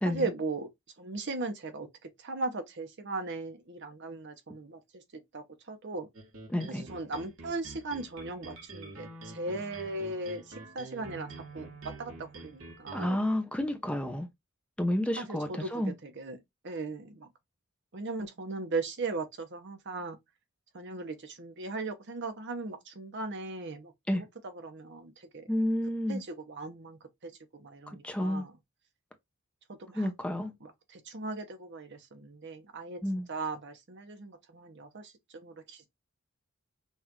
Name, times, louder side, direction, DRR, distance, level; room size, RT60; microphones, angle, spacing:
voice 1, 0.0-0.7 1.0-6.1 6.7-11.7 12.0-13.2 15.2-17.3 17.9-20.2 20.7-25.5 26.1-28.5 29.7-30.1 30.6-33.0 33.3-35.9, right 3 dB, 60° right, 1.0 m, -38 dB
sound 1, 6.1-13.1, right 2 dB, 75° right, 1.5 m, -47 dB
voice 2, 6.5-6.8 12.9-14.3 14.8-15.9 24.1-24.2 25.5-26.2 28.0-28.4 29.9-30.5 33.0-33.3, left 1 dB, 5° left, 0.6 m, -30 dB
5.6 x 2.5 x 2.9 m
head